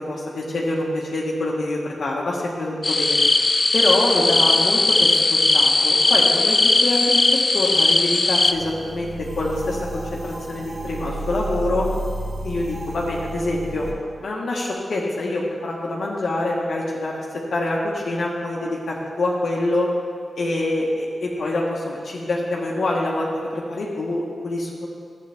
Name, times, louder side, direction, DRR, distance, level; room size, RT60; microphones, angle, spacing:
voice 1, 0.1-3.3 3.7-11.9 12.4-13.9 14.2-19.9 20.4-24.9, left 2 dB, 75° left, -4 dB, 1.2 m, -25 dB
sound 1, 2.8-8.5, left 2 dB, 30° left, 0.3 m, -18 dB
sound 2, 8.5-13.9, right 1 dB, 55° right, 1.8 m, -32 dB
12.0 x 8.0 x 3.5 m, 2.2 s
wide cardioid pair, 90°, 0 cm